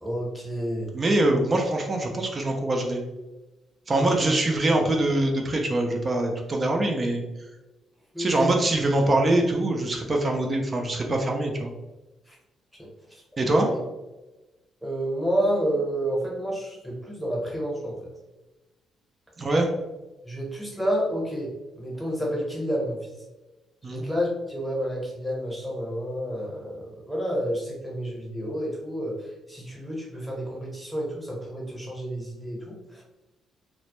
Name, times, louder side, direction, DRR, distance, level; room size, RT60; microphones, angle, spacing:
voice 1, 0.0-0.9 3.9-4.0 8.1-8.5 12.3-12.4 12.8-12.9 14.8-18.0 20.2-23.0 23.8-29.2 29.5-33.0, equal, ahead, -3 dB, 0.9 m, -29 dB
voice 2, 0.9-3.0 3.9-7.2 8.2-11.7 13.4-13.7 19.4-19.7 23.8-24.0, right 2 dB, 35° right, 2 dB, 0.4 m, -23 dB
2.1 x 2.1 x 2.9 m, 1.1 s
cardioid pair, 90°, 0 cm